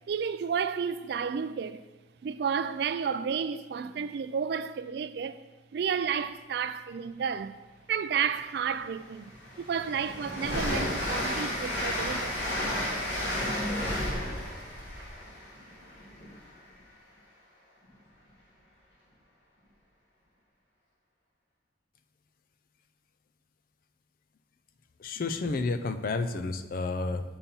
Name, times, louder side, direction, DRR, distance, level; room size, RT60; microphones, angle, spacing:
voice 1, 0.0-1.8 2.2-5.4 5.7-7.6 7.9-9.3 9.6-12.4, right 7 dB, 60° right, 0.3 m, -31 dB
Train, 8.3-8.4 8.9-16.6, left 1 dB, 70° left, 2.1 m, -32 dB
voice 2, 25.0-27.2, left 3 dB, 50° left, 0.4 m, -30 dB
7.1 x 4.2 x 5.3 m
head